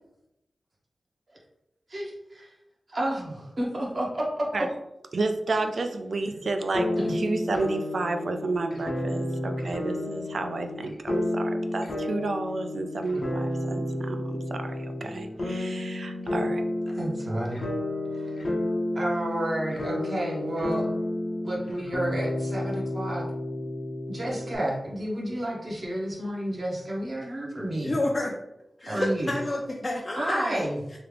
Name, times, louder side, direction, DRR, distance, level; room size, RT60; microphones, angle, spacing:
voice 1, 1.9-2.5 2.9-4.7 5.5-5.6 7.0-7.2 16.9-17.7 18.1-18.4 18.9-20.9 21.4-23.2 24.1-28.0 28.9-29.3 30.2-30.8, right 1 dB, 55° right, -3 dB, 0.9 m, -31 dB
voice 2, 5.1-16.6, right 3 dB, 75° right, 6 dB, 0.3 m, -31 dB
sound 1, 6.7-24.6, left 1 dB, 75° left, 0.7 m, -31 dB
voice 3, 27.8-28.3 28.8-31.0, left 1 dB, 40° left, -2 dB, 0.4 m, -29 dB
3.2 x 2.4 x 3.3 m, 0.88 s
wide cardioid pair, 80°, 0 cm